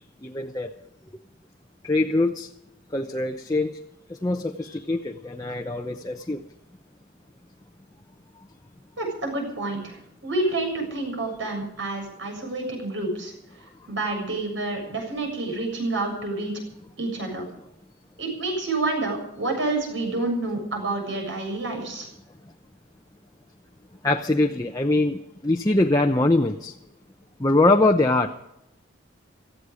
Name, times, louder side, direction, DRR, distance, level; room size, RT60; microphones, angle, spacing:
voice 1, 0.2-0.7 1.8-2.5 2.9-3.8 4.1-6.4 24.0-26.8 27.4-28.3, left 2 dB, 20° left, 2 dB, 0.7 m, -23 dB
voice 2, 9.0-10.0 10.2-13.3 13.9-16.5 17.0-17.5 18.2-22.1, right 2 dB, 70° right, 2 dB, 7.2 m, -28 dB
18.0 x 15.0 x 5.1 m, 0.83 s
head